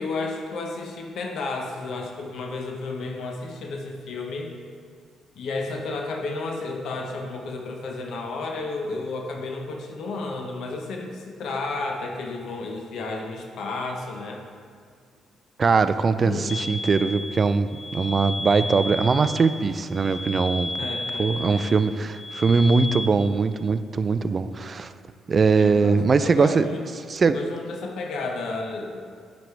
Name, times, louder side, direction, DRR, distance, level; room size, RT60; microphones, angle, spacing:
voice 1, 0.0-4.5 5.3-14.4 16.2-16.5 20.8-21.7 25.6-26.8 27.2-29.1, left 3 dB, 70° left, 2 dB, 0.9 m, -32 dB
voice 2, 15.6-20.8 21.2-24.9 25.3-26.7 27.1-27.4, right 4 dB, 40° right, 12 dB, 0.3 m, -21 dB
sound 1, 16.5-23.1, left 1 dB, 45° left, 0.7 m, -33 dB
9.2 x 5.2 x 3.2 m, 2.1 s
cardioid pair, 90°, 0 cm